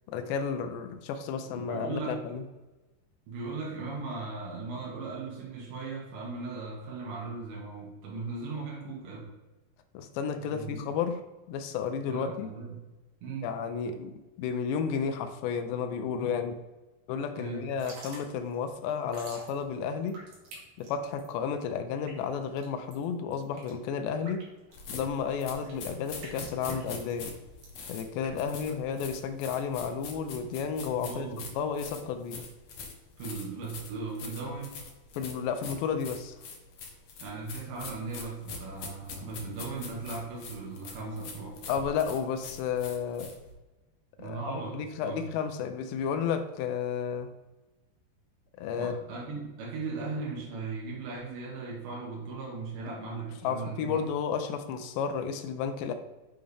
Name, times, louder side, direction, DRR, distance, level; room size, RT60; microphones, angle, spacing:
voice 1, 0.1-2.4 9.9-11.2 11.5-12.5 13.4-16.6 17.1-20.2 20.8-24.5 24.9-27.3 27.9-32.4 35.2-36.4 41.7-43.3 44.2-44.4 44.7-47.3 48.6-48.9 53.4-55.9, left 6 dB, 85° left, 7 dB, 3.0 m, -32 dB
voice 2, 1.4-2.3 3.3-9.3 10.4-10.9 12.0-12.8 13.2-13.5 17.3-17.6 31.0-31.5 33.2-34.8 37.2-41.6 44.2-45.2 48.7-54.0, right 4 dB, 90° right, -3 dB, 4.1 m, -38 dB
Drip / Trickle dribble, 17.6-29.2, right 2 dB, 70° right, 4.3 m, -50 dB
sound 1, 24.7-43.5, left 4 dB, 70° left, 1.5 m, -43 dB
8.9 x 6.4 x 3.6 m, 1.1 s
omnidirectional pair, 4.9 m